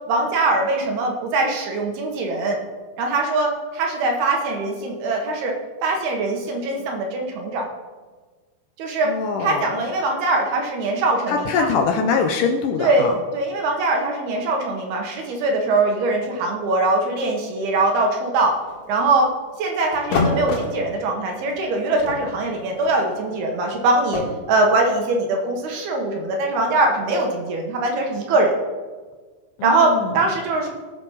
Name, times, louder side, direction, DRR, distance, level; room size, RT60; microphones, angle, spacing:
voice 1, 0.1-2.6 3.0-5.5 5.8-7.7 8.8-9.1 9.4-11.7 12.8-18.6 18.9-19.3 19.6-28.5 29.6-30.7, right 2 dB, 70° right, 1 dB, 3.1 m, -22 dB
voice 2, 9.1-9.7 11.3-13.1 29.6-30.1, left 5 dB, 90° left, 4 dB, 1.8 m, -23 dB
sound 1, 18.4-19.3 19.9-20.7 21.5-21.6 21.9-24.2, left 3 dB, 70° left, 4.0 m, -27 dB
17.5 x 6.6 x 5.7 m, 1.4 s
omnidirectional pair, 4.9 m